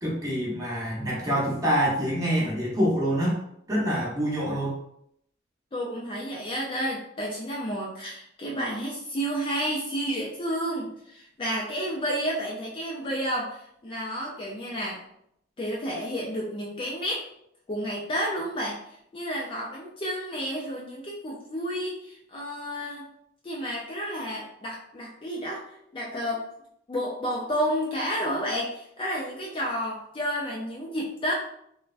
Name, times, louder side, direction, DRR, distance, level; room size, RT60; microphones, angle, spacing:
voice 1, 0.0-3.4 3.7-4.8, equal, 20° right, -6 dB, 0.9 m, -26 dB
voice 2, 5.7-15.0 15.6-17.3 17.7-23.1 23.4-26.5 26.9-31.3, equal, 25° left, -3 dB, 0.4 m, -31 dB
3.4 x 2.1 x 2.4 m, 0.74 s
head